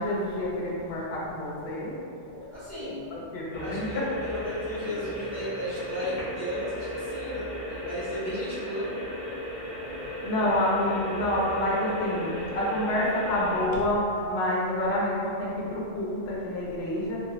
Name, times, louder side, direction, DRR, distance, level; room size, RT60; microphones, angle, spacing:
voice 1, 0.0-1.9 3.1-4.1 4.9-5.0 10.2-17.2, left 1 dB, 60° left, -5 dB, 0.9 m, -28 dB
voice 2, 2.2-3.1 3.6-9.0, equal, 45° right, -10 dB, 0.8 m, -35 dB
sound 1, 3.5-13.7, equal, 90° left, 1.0 m, -36 dB
3.1 x 2.1 x 2.8 m, 2.5 s
omnidirectional pair, 1.3 m